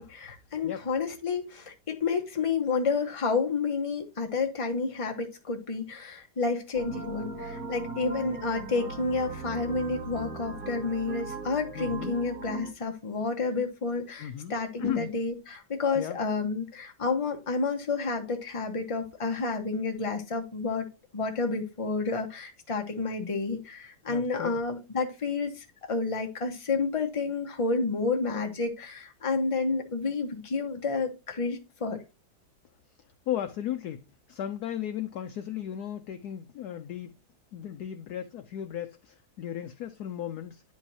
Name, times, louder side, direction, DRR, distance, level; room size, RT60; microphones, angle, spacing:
voice 1, 0.0-20.8 21.1-32.0, left 4 dB, 20° left, 0.9 m, -30 dB
sound 1, 6.7-12.7, right 4 dB, 60° right, 2.4 m, -38 dB
voice 2, 11.7-12.2 14.2-15.1 16.0-16.2 24.1-24.6 33.3-37.1 37.5-40.6, left 10 dB, 80° left, 0.9 m, -35 dB
10.5 x 4.7 x 2.8 m
omnidirectional pair, 2.2 m